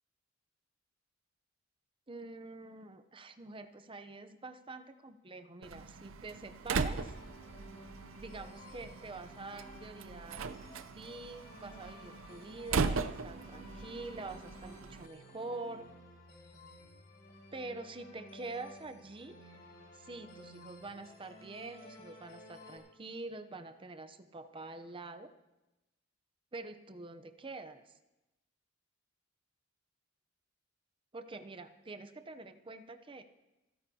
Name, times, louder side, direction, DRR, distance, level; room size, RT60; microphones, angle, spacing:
voice 1, 2.1-7.1 8.2-10.5 10.9-15.9 17.5-19.6 19.9-25.3 26.5-28.0 31.1-33.2, right 3 dB, 25° right, 9 dB, 0.7 m, -46 dB
Slam, 5.6-15.1, right 4 dB, 85° right, 0.6 m, -39 dB
sound 1, 6.8-22.8, equal, 50° left, 4.7 m, -55 dB
29.5 x 9.9 x 2.8 m, 1.0 s
head